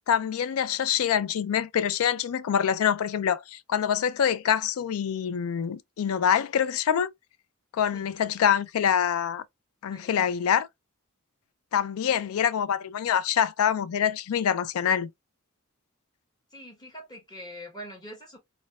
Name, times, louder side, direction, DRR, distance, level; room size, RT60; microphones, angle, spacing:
voice 1, 0.1-7.1 7.7-9.4 9.8-10.7 11.7-15.1, left 8 dB, 90° left, 0.4 m, -25 dB
voice 2, 9.9-10.3 16.5-18.4, equal, 20° left, 1.0 m, -43 dB
4.1 x 2.2 x 2.2 m
head